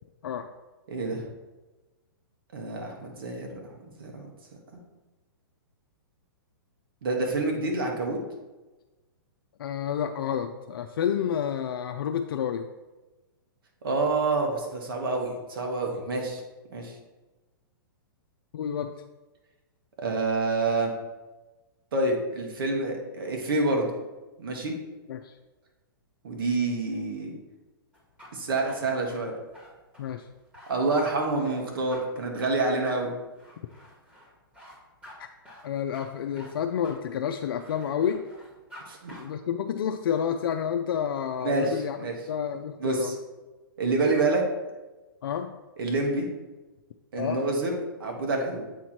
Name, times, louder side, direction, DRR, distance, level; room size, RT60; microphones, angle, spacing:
voice 1, 0.9-1.2 2.5-4.3 7.0-8.2 13.8-16.4 16.7-16.9 20.0-20.9 21.9-23.9 24.4-24.8 26.2-27.4 28.3-29.3 30.7-33.1 38.9-39.1 41.4-42.1 42.8-43.1 43.8-44.4 45.8-46.3 47.1-48.7, right 2 dB, 70° right, 1 dB, 1.5 m, -27 dB
voice 2, 9.6-12.7 18.5-19.0 25.1-25.3 30.0-30.3 35.2-35.3 35.6-38.3 39.2-42.0 42.3-43.2 45.2-45.5 47.2-47.4, left 8 dB, 70° left, 6 dB, 0.4 m, -29 dB
sound 1, 27.9-38.8 39.1-39.2, left 1 dB, 10° right, 1.6 m, -49 dB
8.0 x 3.1 x 4.3 m, 1.2 s
hypercardioid pair, 135°, 12 cm